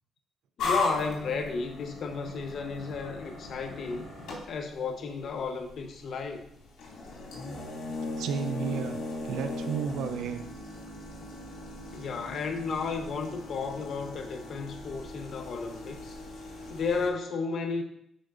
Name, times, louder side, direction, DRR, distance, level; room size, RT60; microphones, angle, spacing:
sound 1, 0.6-17.1, left 3 dB, 80° left, 2.3 m, -38 dB
voice 1, 0.6-4.1 4.4-6.4 11.9-16.2 16.7-17.8, left 4 dB, 60° left, 1.0 m, -33 dB
voice 2, 8.2-9.0 9.3-10.4, right 7 dB, 80° right, 0.6 m, -32 dB
11.5 x 4.5 x 2.6 m
cardioid pair, 90°, 0 cm